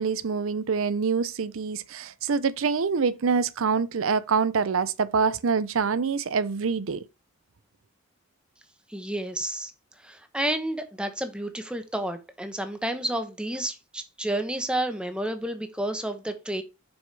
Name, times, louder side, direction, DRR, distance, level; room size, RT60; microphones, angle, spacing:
voice 1, 0.0-7.0, right 5 dB, 70° right, 0.5 m, -25 dB
voice 2, 8.9-9.7 10.0-16.6, right 1 dB, 5° right, 1.0 m, -30 dB
7.1 x 6.3 x 3.3 m
head